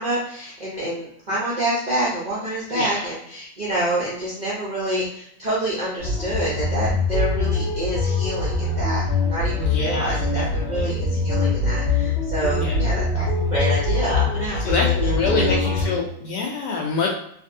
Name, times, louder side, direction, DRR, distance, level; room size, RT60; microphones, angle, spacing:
voice 1, 0.0-15.1 15.4-15.7, right 1 dB, 60° right, -7 dB, 0.4 m, -27 dB
voice 2, 2.7-3.1 9.6-10.9 12.5-12.8 14.6-17.1, left 4 dB, 75° left, 0 dB, 1.1 m, -26 dB
sound 1, 6.0-15.9, left 3 dB, 50° left, 0.8 m, -23 dB
2.9 x 2.6 x 2.6 m, 0.71 s
omnidirectional pair, 2.0 m